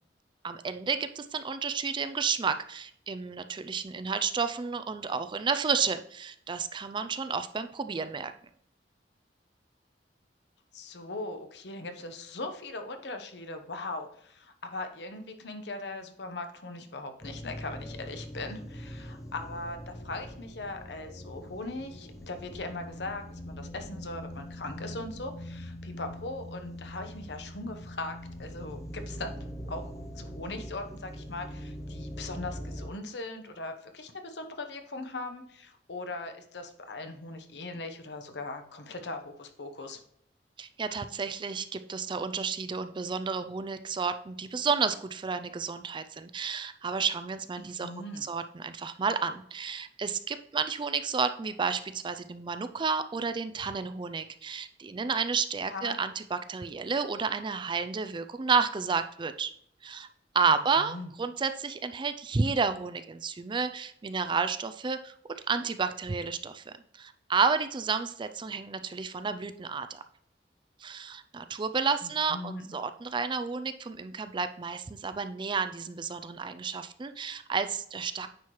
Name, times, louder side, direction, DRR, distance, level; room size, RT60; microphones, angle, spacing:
voice 1, 0.4-8.3 40.6-47.9 48.2-59.5 59.8-60.1 60.3-70.0 70.8-78.3, right 5 dB, 25° right, 11 dB, 0.4 m, -31 dB
voice 2, 10.7-29.3 29.7-40.0 47.6-48.3 55.7-56.0 60.5-61.1 72.0-72.7, left 2 dB, 70° left, 7 dB, 1.0 m, -40 dB
sound 1, 17.2-32.9, equal, 20° left, 0.6 m, -42 dB
9.2 x 4.6 x 3.1 m, 0.69 s
head